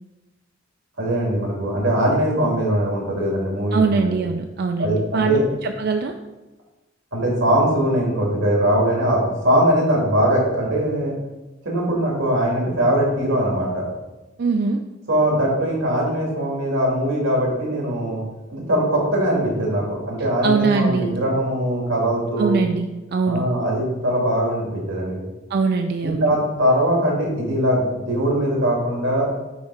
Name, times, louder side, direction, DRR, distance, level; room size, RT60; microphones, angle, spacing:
voice 1, 1.0-4.1 4.8-5.5 7.1-11.1 11.6-13.8 15.1-18.2 18.5-22.6 23.3-25.2 26.0-29.3, right 1 dB, 90° right, -2 dB, 2.2 m, -21 dB
voice 2, 3.7-6.1 14.4-14.8 20.4-21.2 22.4-23.5 25.5-26.3, right 4 dB, 55° right, 5 dB, 0.4 m, -22 dB
7.1 x 3.2 x 4.7 m, 1.1 s
head